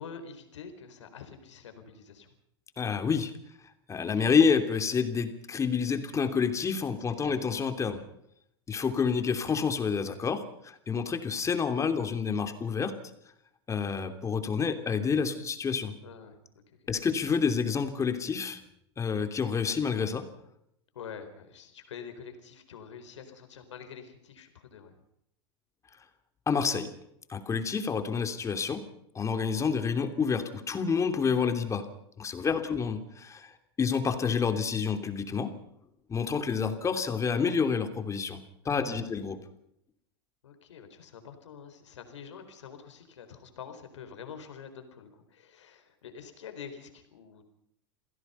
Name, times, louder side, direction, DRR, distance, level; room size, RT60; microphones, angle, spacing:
voice 1, 0.0-2.3 7.2-7.4 16.0-16.4 20.9-25.0 32.6-32.9 38.6-39.1 40.4-47.5, left 6 dB, 85° left, 7 dB, 4.4 m, -46 dB
voice 2, 2.8-3.3 3.9-8.0 8.7-12.9 13.7-15.9 16.9-18.6 19.0-20.3 26.5-26.9 27.3-28.8 29.1-31.9 32.2-35.5 36.1-38.4 38.6-39.4, left 6 dB, 20° left, 7 dB, 3.0 m, -28 dB
28.5 x 16.5 x 5.7 m, 0.75 s
hypercardioid pair, 110°, 15 cm